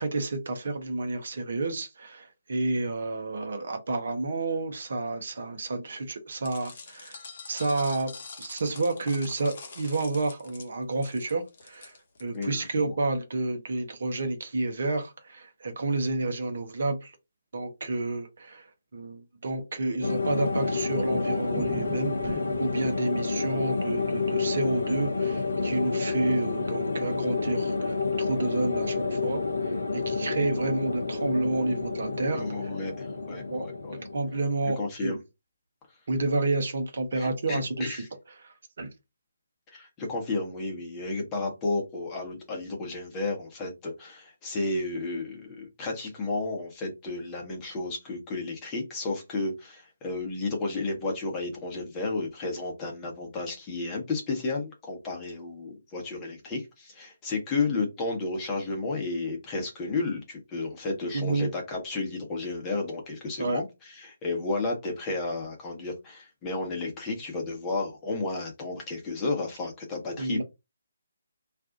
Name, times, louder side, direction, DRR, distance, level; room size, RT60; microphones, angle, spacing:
voice 1, 0.0-7.2 7.5-8.1 8.4-17.1 17.5-18.7 18.9-32.5 33.5-33.7 34.1-35.2 36.1-38.0 38.4-38.9 61.1-61.5 63.4-63.6 70.2-70.4, right 2 dB, 55° right, 0.8 m, -30 dB
sound 1, 6.4-12.5, left 4 dB, 45° left, 0.9 m, -45 dB
voice 2, 12.3-12.9 32.3-34.0 34.8-35.2 37.1-38.1 39.7-70.4, left 3 dB, 20° left, 1.0 m, -32 dB
sound 2, 20.0-34.6, left 4 dB, 70° left, 0.5 m, -29 dB
Thunder, 20.6-25.9 26.2-26.3 26.6-26.7 26.9-27.0 27.6-27.9, right 5 dB, 20° right, 0.9 m, -44 dB
2.5 x 2.4 x 3.6 m
figure-of-eight pair, 145°, 0 cm